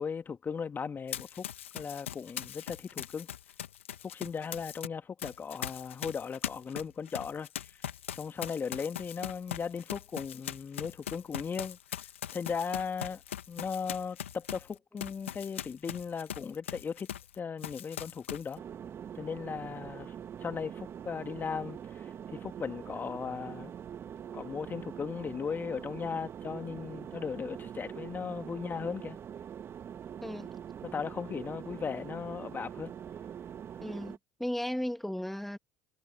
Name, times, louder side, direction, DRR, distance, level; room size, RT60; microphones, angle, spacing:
voice 1, 0.0-1.4 1.7-3.3 4.0-7.8 8.1-12.1 12.3-13.2 13.5-17.1 17.3-18.6 19.1-20.1 20.4-23.7 24.3-29.2 30.8-32.9, left 6 dB, 30° left, 2.2 m, -37 dB
Run, 1.1-4.9 5.2-17.3 17.6-18.5, left 10 dB, 85° left, 1.8 m, -41 dB
sound 1, 18.6-34.2, right 9 dB, 40° right, 2.2 m, -44 dB
voice 2, 33.8-35.6, left 1 dB, 5° left, 1.7 m, -35 dB
hypercardioid pair, 70°, 7 cm